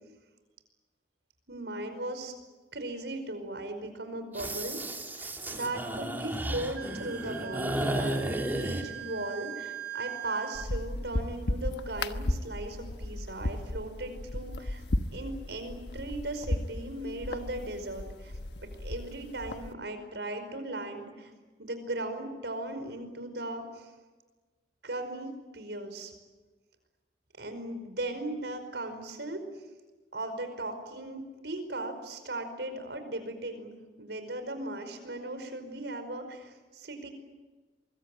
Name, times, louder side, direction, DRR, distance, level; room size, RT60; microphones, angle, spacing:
voice 1, 1.5-2.3 2.7-14.9 15.1-18.3 18.6-21.3 21.6-23.9 24.8-26.1 27.4-29.4 30.1-37.1, right 2 dB, 75° right, 8 dB, 5.1 m, -38 dB
sound 1, 4.3-8.8, right 1 dB, 10° right, 2.8 m, -33 dB
Wind instrument woodwind instrument, 6.7-10.7, right 11 dB, 55° right, 1.7 m, -41 dB
sound 2, 10.5-19.7, left 1 dB, 70° left, 1.2 m, -35 dB
24.5 x 22.5 x 9.1 m, 1.2 s
head